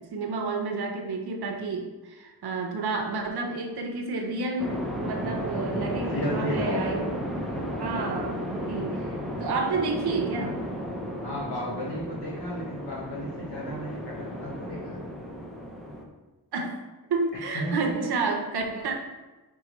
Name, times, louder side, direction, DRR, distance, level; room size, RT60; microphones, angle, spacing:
voice 1, 0.0-7.1 7.8-10.6 16.5-16.8 17.1-19.0, right 3 dB, 80° right, 2 dB, 0.7 m, -30 dB
sound 1, 4.6-16.0, equal, ahead, 0.5 m, -34 dB
voice 2, 6.0-6.9 11.2-15.0 17.5-17.9, equal, 80° left, -4 dB, 1.1 m, -33 dB
4.6 x 3.7 x 3.0 m, 1.1 s
wide cardioid pair, 155°, 39 cm